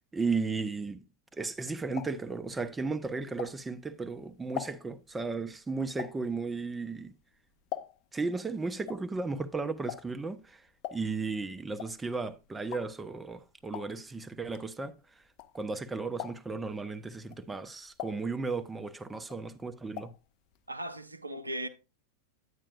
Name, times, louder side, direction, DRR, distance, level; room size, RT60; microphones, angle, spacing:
voice 1, 0.1-1.0 1.3-7.1 8.1-14.9 15.5-20.1, right 4 dB, 10° right, 0.5 m, -35 dB
sound 1, 1.4-3.9 4.3-8.2 8.5-15.8 16.1-16.7 17.2-18.9 19.2-20.3 20.5-20.6 20.9-21.0, left 12 dB, 40° left, 0.5 m, -43 dB
voice 2, 20.7-21.7, right 1 dB, 80° right, 0.7 m, -37 dB
9.5 x 8.7 x 2.4 m
figure-of-eight pair, 90°, 0 cm